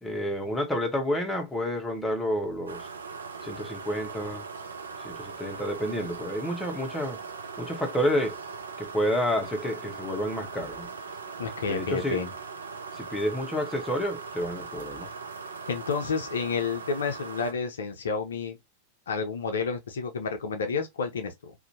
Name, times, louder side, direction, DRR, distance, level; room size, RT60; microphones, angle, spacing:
voice 1, 0.0-2.9 3.4-4.4 5.0-7.2 7.6-8.4 8.8-10.9 11.6-12.2 12.9-15.1, equal, 10° left, 0.7 m, -29 dB
sound 1, 2.7-17.5, right 4 dB, 70° right, 0.4 m, -40 dB
voice 2, 11.4-12.3 15.7-18.6 19.1-21.5, left 5 dB, 65° left, 0.5 m, -30 dB
2.5 x 2.1 x 2.6 m
figure-of-eight pair, 90°, 0 cm